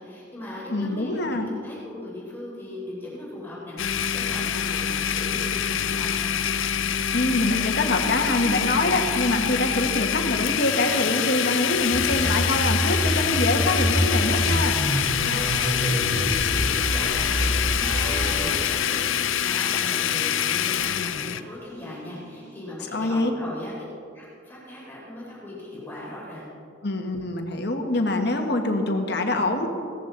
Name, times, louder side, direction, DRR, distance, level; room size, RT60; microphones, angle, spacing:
voice 1, 0.0-6.4 15.2-23.7 24.1-26.4, left 1 dB, 10° left, -6 dB, 4.0 m, -38 dB
voice 2, 0.7-1.5 7.1-14.8 22.9-23.3 26.8-29.7, left 2 dB, 55° left, 4 dB, 1.5 m, -25 dB
Domestic sounds home sounds, 3.8-21.4, left 9 dB, 80° left, 0.5 m, -25 dB
sound 1, 11.9-18.5, equal, 85° right, 3.6 m, -26 dB
sound 2, 21.0-22.7, equal, 20° right, 3.8 m, -52 dB
17.5 x 14.0 x 4.0 m, 2.3 s
head